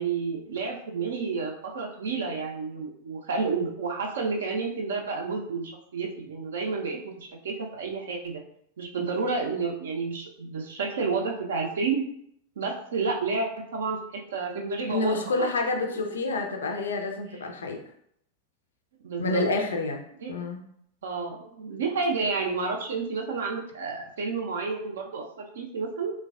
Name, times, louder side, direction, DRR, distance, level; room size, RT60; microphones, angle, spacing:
voice 1, 0.0-8.4 8.8-12.0 12.6-15.5 17.3-17.4 19.0-19.4 20.2-20.3 21.0-26.1, right 4 dB, 65° right, 1 dB, 0.4 m, -30 dB
voice 2, 14.9-17.8 19.2-20.0 20.3-20.6, left 3 dB, 65° left, 3 dB, 0.4 m, -28 dB
3.1 x 2.2 x 2.3 m, 0.70 s
figure-of-eight pair, 90°, 0 cm